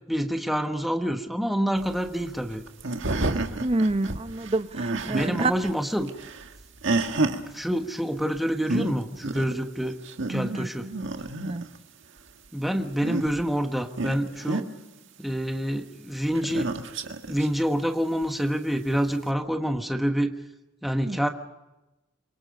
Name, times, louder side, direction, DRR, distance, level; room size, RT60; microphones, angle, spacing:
voice 1, 0.1-2.6 5.1-6.1 7.3-10.0 10.3-10.9 12.5-14.7 15.2-16.7 17.3-20.3 20.8-21.3, equal, ahead, 1.2 m, -27 dB
sound 1, 1.8-5.7 6.0-7.4 8.4-8.5 8.6-8.9 9.2-9.6 9.9-11.8 12.8-13.5 14.0-14.6 16.3-17.5 18.2-18.3 19.3-19.4, right 2 dB, 60° right, 1.8 m, -29 dB
voice 2, 3.6-5.5 10.5-10.7 11.4-11.6 21.1-21.2, right 2 dB, 30° right, 0.8 m, -27 dB
27.5 x 24.0 x 5.3 m
head